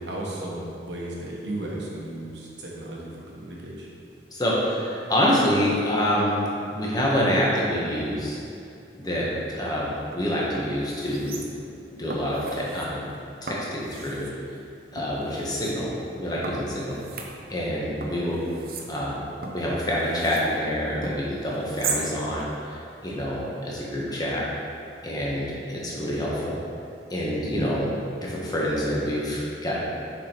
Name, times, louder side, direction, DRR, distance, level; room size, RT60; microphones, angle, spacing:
voice 1, 0.0-3.9 18.3-18.6, right 1 dB, 85° right, -4 dB, 1.4 m, -35 dB
voice 2, 4.3-6.4 6.7-8.4 9.0-11.4 12.0-13.0 13.4-14.3 14.9-17.0 17.5-18.3 18.9-19.2 19.5-24.4 25.0-26.5 27.1-29.8, equal, 20° left, -5 dB, 1.3 m, -26 dB
sound 1, 10.0-10.1 10.5-11.8 12.1-12.9 13.5-14.4 15.0-15.7 16.4-17.7 18.0-20.5 21.0-22.1 22.4-22.5, right 4 dB, 55° right, 0.7 m, -36 dB
6.6 x 5.1 x 4.5 m, 2.5 s
head